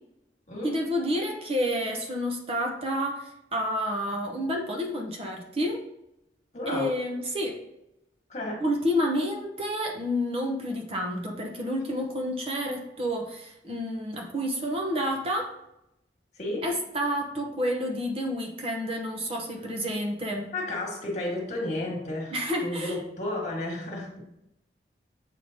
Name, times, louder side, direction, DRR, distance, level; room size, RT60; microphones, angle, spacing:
voice 1, 0.6-5.8 6.7-7.6 8.6-15.5 16.6-20.5 22.3-22.9, equal, 35° right, 1 dB, 0.8 m, -29 dB
voice 2, 6.5-6.9 8.3-8.6 16.3-16.6 20.5-22.4 22.6-24.2, left 2 dB, 40° left, -1 dB, 1.6 m, -32 dB
7.5 x 4.9 x 2.8 m, 0.84 s
head